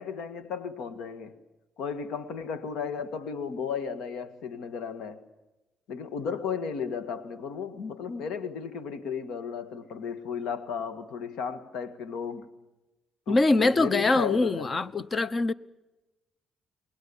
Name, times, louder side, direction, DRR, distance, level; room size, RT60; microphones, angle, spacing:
voice 1, 0.0-1.4 1.8-5.3 5.9-12.5 13.3-14.8, left 6 dB, 85° left, 1.9 m, -34 dB
voice 2, 13.3-15.5, left 3 dB, 35° left, 0.9 m, -23 dB
28.0 x 20.5 x 7.1 m
cardioid pair, 90°, 0 cm